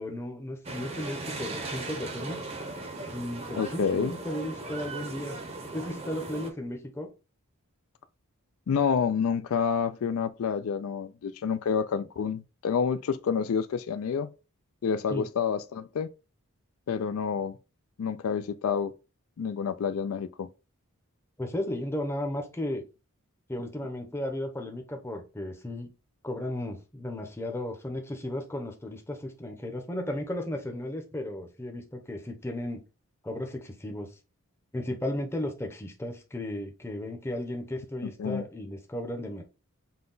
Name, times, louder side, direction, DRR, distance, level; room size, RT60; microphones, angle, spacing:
voice 1, 0.0-2.4 3.1-5.4 5.7-7.1 15.1-15.3 21.4-22.8 23.5-25.9 26.2-32.8 33.2-34.1 34.7-39.4, left 1 dB, 10° left, 0.7 m, -35 dB
sound 1, 0.6-6.5, right 2 dB, 25° right, 0.7 m, -38 dB
voice 2, 3.6-4.1 8.7-14.3 14.8-16.1 16.9-17.6 18.0-18.9 19.4-20.5 38.2-38.4, left 6 dB, 70° left, 0.3 m, -28 dB
5.7 x 2.2 x 3.8 m
head